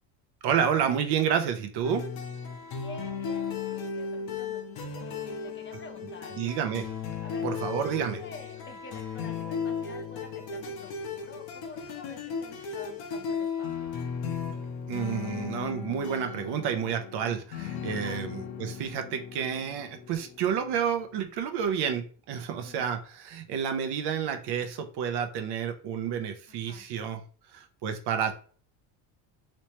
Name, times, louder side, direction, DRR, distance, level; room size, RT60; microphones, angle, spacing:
voice 1, 0.4-2.1 6.4-6.9 7.4-8.2 14.9-27.2 27.5-28.3, right 8 dB, 60° right, 7 dB, 0.8 m, -30 dB
sound 1, 1.8-21.2, left 6 dB, 55° left, 0.9 m, -36 dB
voice 2, 2.7-6.5 7.2-7.5 7.8-13.9 17.9-18.3 22.5-22.8 26.5-26.9, left 3 dB, 25° left, 5 dB, 0.5 m, -49 dB
3.2 x 3.1 x 3.0 m, 0.41 s
supercardioid pair, 95°, 45 cm